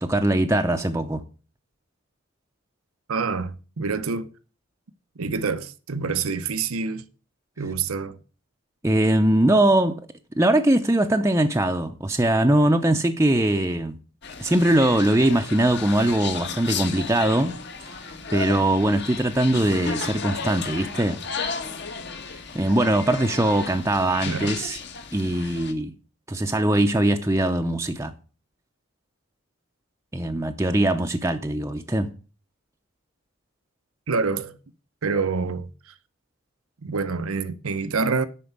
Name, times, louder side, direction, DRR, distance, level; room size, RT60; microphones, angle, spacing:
voice 1, 0.0-1.2 8.8-10.0 10.4-14.0 14.4-17.6 18.3-21.2 22.5-24.8 25.1-25.9 26.3-28.1 30.1-32.1, right 1 dB, 15° right, 0.6 m, -21 dB
voice 2, 3.1-4.3 5.2-7.0 7.6-8.2 24.2-24.6 34.1-34.6 35.0-36.0 36.8-38.3, right 4 dB, 85° right, 0.8 m, -27 dB
sound 1, 14.2-25.7, left 5 dB, 55° left, 1.4 m, -34 dB
11.0 x 4.5 x 8.0 m
head